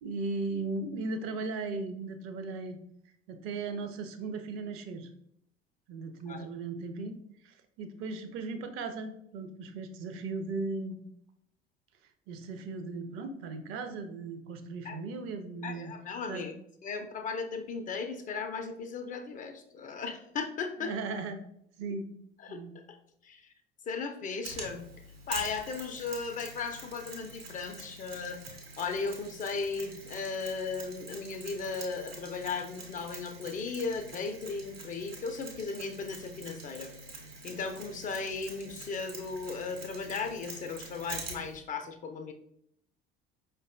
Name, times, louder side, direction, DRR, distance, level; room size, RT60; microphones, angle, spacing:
voice 1, 0.0-2.8 3.3-5.1 5.9-7.2 7.4-11.0 12.3-15.9 16.3-16.5 20.8-21.4 21.8-22.1 22.5-22.8, right 3 dB, 45° right, 8 dB, 0.5 m, -37 dB
voice 2, 15.6-16.5 16.8-20.9 22.4-23.0 23.2-23.5 23.9-24.8 25.3-28.4 28.8-36.9 37.4-42.3, left 4 dB, 30° left, 6 dB, 0.4 m, -36 dB
Mechanisms, 24.4-41.5, right 3 dB, 80° right, 0.8 m, -46 dB
5.1 x 2.2 x 2.5 m, 0.73 s
figure-of-eight pair, 60°, 30 cm